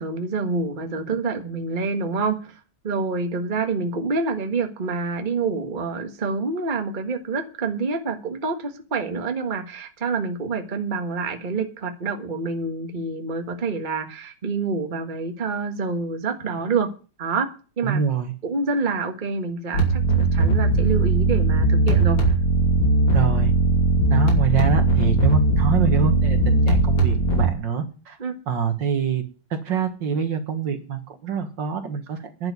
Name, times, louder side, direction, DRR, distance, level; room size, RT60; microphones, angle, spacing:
voice 1, 0.0-16.9 17.2-17.5 17.8-18.0 18.4-22.2 28.2-28.3, right 4 dB, 25° right, 5 dB, 1.4 m, -27 dB
voice 2, 17.8-18.3 23.1-23.5 24.1-28.2 28.5-29.2 29.5-32.5, right 7 dB, 60° right, 7 dB, 2.1 m, -25 dB
sound 1, 19.7-27.5, right 2 dB, 80° left, 3.7 m, -19 dB
11.0 x 7.2 x 9.5 m, 0.36 s
omnidirectional pair, 2.3 m